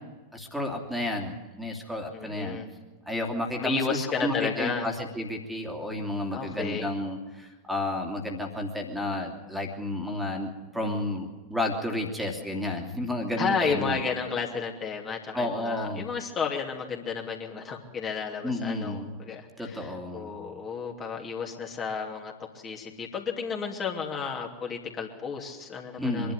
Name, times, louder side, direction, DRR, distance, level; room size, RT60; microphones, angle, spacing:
voice 1, 0.3-2.6 3.1-14.0 15.3-16.1 18.4-19.1 19.6-20.3 26.0-26.3, left 1 dB, 5° right, 3 dB, 2.9 m, -31 dB
voice 2, 2.1-2.7 3.6-4.9 6.3-6.9 13.4-26.3, left 5 dB, 25° left, 1 dB, 2.8 m, -32 dB
24.0 x 12.0 x 9.9 m, 1.3 s
figure-of-eight pair, 90°, 0 cm